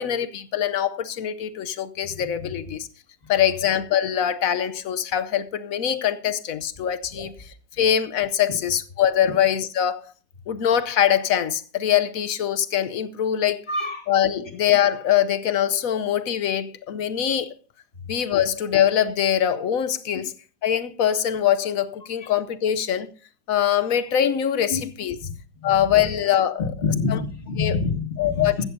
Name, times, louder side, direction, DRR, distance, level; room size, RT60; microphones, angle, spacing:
voice 1, 0.0-2.9 3.3-7.5 7.8-10.1 10.5-13.6 14.1-17.5 18.1-20.3 20.6-23.1 23.5-25.2 25.6-27.2 27.6-27.8 28.2-28.6, left 10 dB, 60° left, 1.0 m, -23 dB
voice 2, 13.7-14.0 14.4-14.5 22.2-22.3 24.7-24.8 25.2-25.3 25.6-26.1 26.8-28.6, left 4 dB, 35° left, 2.4 m, -27 dB
15.5 x 13.0 x 2.7 m
omnidirectional pair, 1.9 m